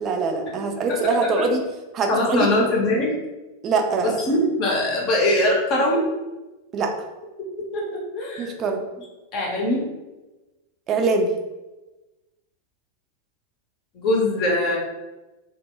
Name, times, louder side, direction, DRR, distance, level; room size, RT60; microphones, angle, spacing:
voice 1, 0.0-1.6 1.9-2.5 3.6-4.2 6.7-6.9 8.4-8.9 10.9-11.3, right 3 dB, 30° right, 3 dB, 0.4 m, -23 dB
voice 2, 2.1-3.1 4.0-6.0 7.7-7.9 8.1-8.5 9.3-9.8 13.9-14.8, left 1 dB, 40° left, -2 dB, 0.7 m, -21 dB
2.1 x 2.1 x 3.7 m, 1.1 s
figure-of-eight pair, 90°, 0 cm